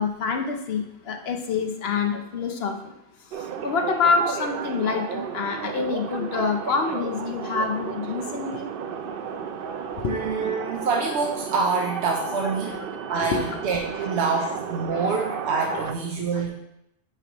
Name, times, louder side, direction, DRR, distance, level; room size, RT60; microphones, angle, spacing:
voice 1, 0.0-2.8 3.6-8.6 10.0-10.1 12.6-12.8 13.1-13.6 14.0-14.1 14.9-15.2 15.8-15.9, left 5 dB, 70° left, 4 dB, 1.0 m, -27 dB
sound 1, 3.3-15.9, right 7 dB, 65° right, 0.7 m, -33 dB
voice 2, 10.1-12.8 13.1-16.5, right 4 dB, 85° right, 0 dB, 1.1 m, -26 dB
9.0 x 5.0 x 3.0 m, 0.82 s
omnidirectional pair, 1.1 m